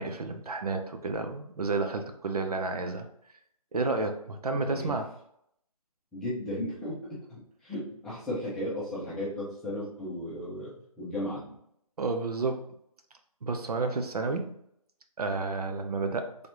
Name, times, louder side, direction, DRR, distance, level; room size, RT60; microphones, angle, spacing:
voice 1, 0.0-3.1 3.7-5.1 12.0-12.7 13.4-14.5 15.2-16.4, right 3 dB, 80° right, 6 dB, 0.7 m, -31 dB
voice 2, 4.5-4.9 6.1-11.5, left 1 dB, 5° left, -10 dB, 0.6 m, -35 dB
3.9 x 3.4 x 3.0 m, 0.73 s
hypercardioid pair, 160°, 19 cm